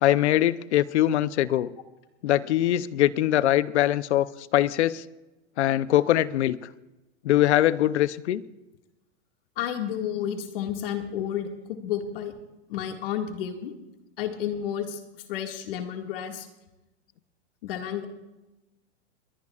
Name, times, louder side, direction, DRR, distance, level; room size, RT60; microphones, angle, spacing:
voice 1, 0.0-1.7 2.2-5.0 5.6-6.6 7.2-8.4, left 13 dB, 75° left, 16 dB, 0.7 m, -22 dB
voice 2, 9.6-12.3 12.7-13.7 14.2-16.5 17.6-18.1, left 9 dB, 55° left, 3 dB, 2.1 m, -31 dB
21.5 x 18.0 x 2.5 m, 1.0 s
supercardioid pair, 165°, 34 cm